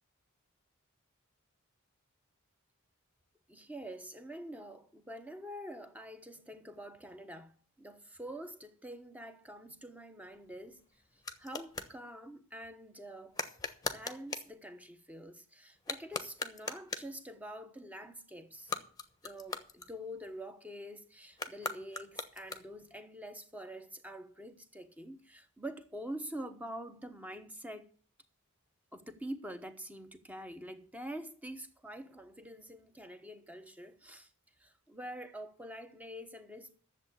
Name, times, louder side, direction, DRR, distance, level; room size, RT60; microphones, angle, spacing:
voice 1, 3.5-10.8 11.4-13.4 13.9-18.8 19.2-27.9 28.9-34.3 34.6-36.8, equal, 5° right, 1.1 m, -46 dB
sound 1, 10.2-12.0 13.3-14.6 15.8-17.2 18.5-20.4 21.3-22.9, left 4 dB, 15° left, 1.0 m, -41 dB
10.5 x 7.5 x 8.4 m
head